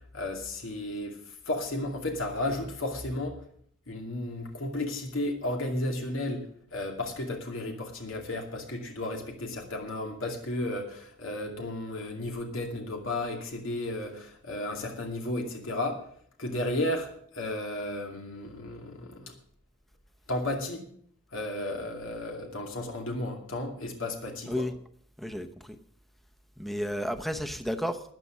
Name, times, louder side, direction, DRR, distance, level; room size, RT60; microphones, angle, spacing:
voice 1, 0.1-1.2 1.5-3.4 3.9-16.0 16.4-19.3 20.3-20.8 21.3-24.6, left 1 dB, 80° left, 2 dB, 2.5 m, -33 dB
voice 2, 25.2-25.8 26.6-28.0, equal, ahead, 6 dB, 0.9 m, -32 dB
13.5 x 9.9 x 6.2 m, 0.62 s
head